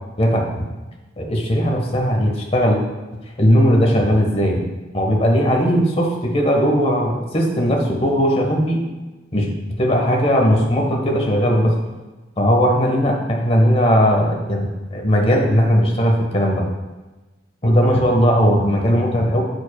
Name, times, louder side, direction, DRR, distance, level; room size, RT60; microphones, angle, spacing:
voice 1, 0.2-0.6 1.2-2.8 3.4-4.6 4.9-8.8 9.3-9.5 9.8-11.7 12.4-16.6 17.6-19.4, equal, 35° left, 0 dB, 1.4 m, -18 dB
13.0 x 5.1 x 2.4 m, 1.2 s
head